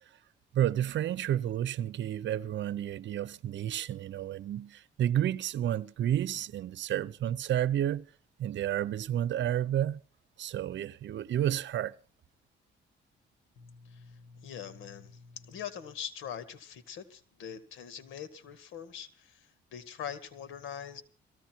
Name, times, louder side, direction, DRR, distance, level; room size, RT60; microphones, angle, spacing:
voice 1, 0.5-8.1 8.4-10.0 10.4-11.9, right 11 dB, 65° right, 0.8 m, -31 dB
voice 2, 13.6-21.0, left 8 dB, 90° left, 1.9 m, -43 dB
18.5 x 14.5 x 4.6 m
cardioid pair, 90°, 20 cm